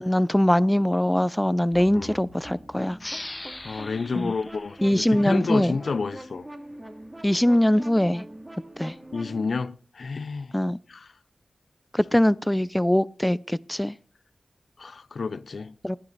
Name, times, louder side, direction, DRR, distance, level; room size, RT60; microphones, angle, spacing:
voice 1, 0.0-3.0 4.2-4.3 4.8-5.7 7.2-8.2 8.8-8.9 10.5-10.8 11.9-13.9 15.8-16.0, left 1 dB, 10° left, 0.6 m, -22 dB
sound 1, 1.7-9.5, right 1 dB, 20° right, 2.8 m, -43 dB
sound 2, 3.0-6.2, left 1 dB, 25° left, 1.7 m, -41 dB
voice 2, 3.6-6.5 9.1-10.6 10.9-11.1 14.8-15.7, left 4 dB, 75° left, 0.6 m, -30 dB
17.5 x 10.5 x 4.1 m
cardioid pair, 50°, 0 cm